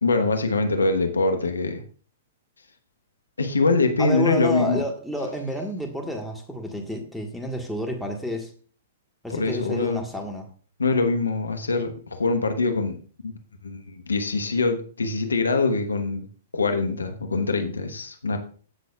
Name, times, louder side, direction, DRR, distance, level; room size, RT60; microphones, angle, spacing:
voice 1, 0.0-1.8 3.4-4.8 9.3-10.0 10.8-13.0 13.2-13.3 13.6-16.3 16.5-18.4, left 3 dB, 80° left, 7 dB, 1.2 m, -23 dB
voice 2, 4.0-8.5 9.2-10.5, left 1 dB, ahead, 1 dB, 1.5 m, -30 dB
14.5 x 6.1 x 2.4 m, 0.42 s
figure-of-eight pair, 110°, 0 cm